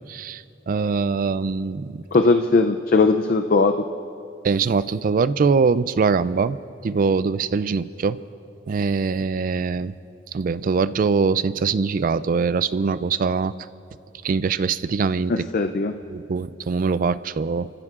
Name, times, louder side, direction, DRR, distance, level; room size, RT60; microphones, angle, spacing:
voice 1, 0.0-2.0 4.4-6.6 6.8-8.2 8.7-9.9 10.3-13.5 14.2-15.5 16.1-17.7, right 5 dB, 50° right, 15 dB, 0.3 m, -23 dB
voice 2, 2.1-3.7 15.3-15.9, left 3 dB, 50° left, 7 dB, 0.4 m, -19 dB
29.5 x 15.0 x 2.5 m, 2.7 s
head